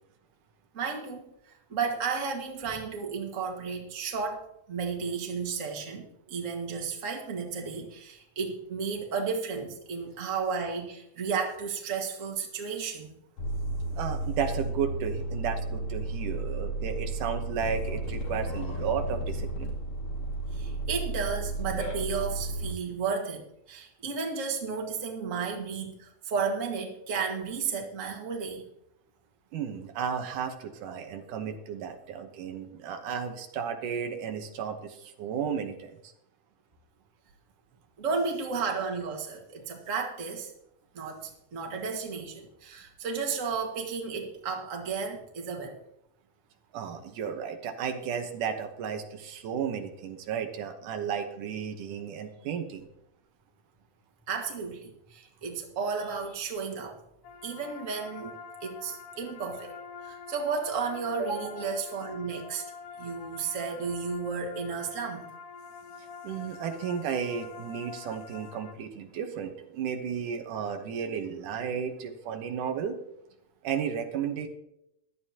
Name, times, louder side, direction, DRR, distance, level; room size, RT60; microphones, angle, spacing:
voice 1, 0.7-1.3 1.7-13.1 20.5-28.6 38.0-40.5 40.9-45.8 54.3-57.0 57.4-62.6 63.0-65.2, right 5 dB, 30° right, 1 dB, 1.7 m, -33 dB
sound 1, 13.4-22.7, right 2 dB, 50° left, 3.0 m, -33 dB
voice 2, 14.0-19.7 29.5-36.0 46.7-52.9 66.2-73.0 73.6-74.5, right 7 dB, 80° right, 5 dB, 2.7 m, -33 dB
sound 2, 57.2-68.7, left 6 dB, 75° left, 1.4 m, -46 dB
15.5 x 12.0 x 2.9 m, 0.80 s
omnidirectional pair, 3.5 m